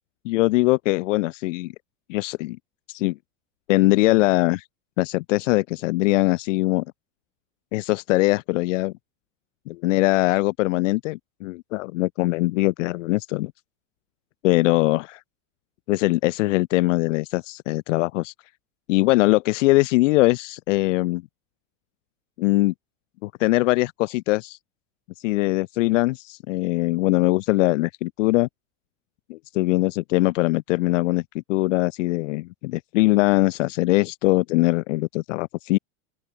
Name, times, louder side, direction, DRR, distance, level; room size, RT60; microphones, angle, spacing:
voice 1, 0.2-1.7 2.1-2.6 2.9-3.2 3.7-4.6 5.0-6.8 7.7-8.9 9.7-13.5 14.4-15.2 15.9-18.3 18.9-21.2 22.4-22.7 23.2-24.6 25.2-28.5 29.3-31.2 31.5-35.8, left 21 dB, 60° left, 1.2 m, -21 dB
open air
supercardioid pair, 165°, 41 cm